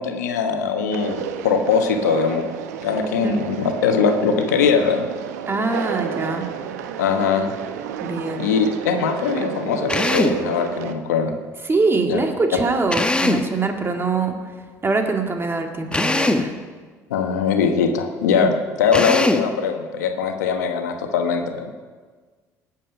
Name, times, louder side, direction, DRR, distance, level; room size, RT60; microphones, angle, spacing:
voice 1, 0.0-2.4 2.8-5.1 7.0-7.5 8.4-11.3 12.1-12.2 17.1-18.5 18.8-21.7, left 6 dB, 85° left, 5 dB, 1.2 m, -21 dB
Conversation, 0.9-10.9, right 8 dB, 85° right, 0.9 m, -31 dB
voice 2, 5.5-6.5 8.0-8.5 11.6-14.3 14.8-16.5 18.3-18.5, right 3 dB, 25° right, 4 dB, 2.2 m, -23 dB
Drill, 9.9-10.4 12.9-13.5 15.9-16.5 18.9-19.5, left 2 dB, 10° left, 1.2 m, -21 dB
19.0 x 7.6 x 5.7 m, 1.5 s
hypercardioid pair, 65°, 9 cm